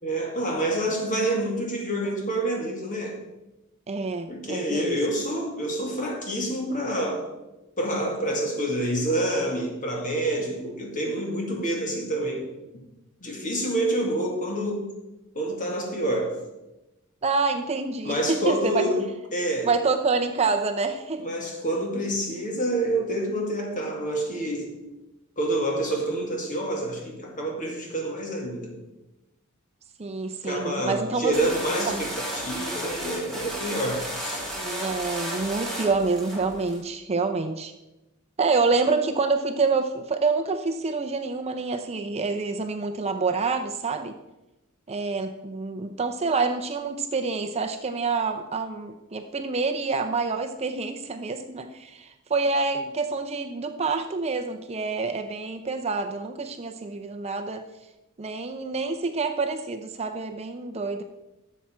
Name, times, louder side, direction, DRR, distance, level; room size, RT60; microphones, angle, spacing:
voice 1, 0.0-3.2 4.3-7.2 7.8-12.5 13.2-15.0 15.4-16.4 18.0-19.7 21.2-24.8 25.4-28.8 30.4-34.4, right 1 dB, 35° left, 0 dB, 2.1 m, -27 dB
voice 2, 3.9-5.0 17.2-18.8 19.6-21.3 30.0-31.4 31.9-32.0 34.5-37.7 38.4-44.1 44.9-57.6 58.2-61.0, right 4 dB, 30° right, 5 dB, 0.5 m, -27 dB
Kick Of Satan, 31.3-36.8, equal, ahead, 2.8 m, -33 dB
12.0 x 7.1 x 4.4 m, 0.99 s
head